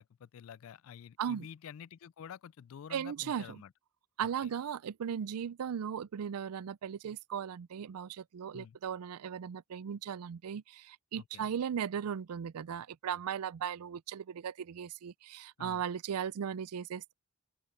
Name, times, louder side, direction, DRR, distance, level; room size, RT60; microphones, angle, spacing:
voice 1, 0.0-3.7 4.4-4.5 8.5-8.8 11.2-11.5 15.6-15.8, left 8 dB, 65° left, 0.3 m, -49 dB
voice 2, 2.9-3.5 4.2-17.1, right 8 dB, 85° right, 0.4 m, -37 dB
open air
head